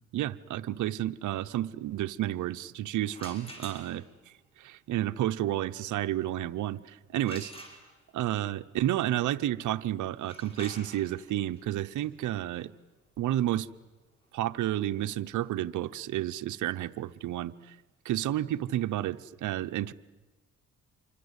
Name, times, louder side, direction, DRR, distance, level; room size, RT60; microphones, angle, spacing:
voice 1, 0.1-4.0 4.6-7.5 8.1-12.7 13.2-13.7 14.3-17.7 18.0-19.9, right 13 dB, 75° right, 10 dB, 0.9 m, -31 dB
sound 1, 3.1-4.2 7.2-8.3 10.1-15.8, equal, 20° left, 6.9 m, -49 dB
27.5 x 24.5 x 8.3 m, 1.1 s
cardioid pair, 90°, 30 cm